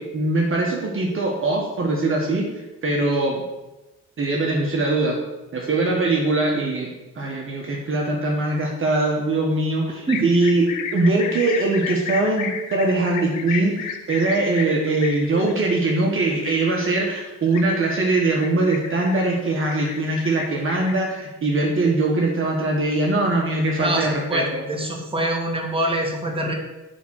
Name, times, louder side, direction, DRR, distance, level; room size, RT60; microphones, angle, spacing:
voice 1, 0.0-3.4 4.2-5.2 5.5-24.6, right 2 dB, 45° right, -1 dB, 1.4 m, -22 dB
sound 1, 10.1-21.0, left 7 dB, 80° left, 0.9 m, -33 dB
voice 2, 23.8-26.5, right 1 dB, 20° right, 0 dB, 1.7 m, -25 dB
8.3 x 3.7 x 6.4 m, 1.0 s
cardioid pair, 90°, 30 cm